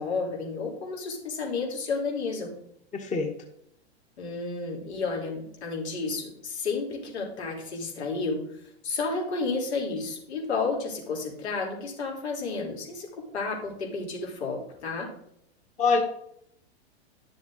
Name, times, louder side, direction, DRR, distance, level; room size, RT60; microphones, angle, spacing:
voice 1, 0.0-2.5 4.2-15.1, left 4 dB, 75° left, -2 dB, 4.3 m, -31 dB
voice 2, 2.9-3.3 15.8-16.0, left 4 dB, 20° left, 2 dB, 1.5 m, -24 dB
11.5 x 7.0 x 3.9 m, 0.72 s
hypercardioid pair, 115°, 33 cm